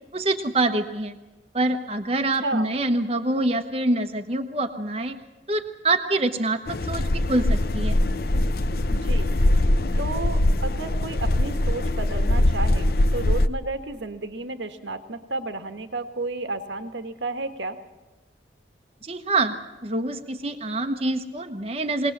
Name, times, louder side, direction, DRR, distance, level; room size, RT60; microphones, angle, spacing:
voice 1, 0.1-1.2 1.5-5.2 5.5-8.0 19.0-19.5 19.8-22.1, right 2 dB, 30° right, 5 dB, 1.1 m, -25 dB
voice 2, 2.4-2.7 8.9-9.4 10.0-17.8, right 2 dB, 85° right, 8 dB, 1.6 m, -32 dB
sound 1, 6.7-13.5, left 1 dB, 55° left, 0.7 m, -22 dB
22.0 x 18.5 x 7.4 m, 1.1 s
head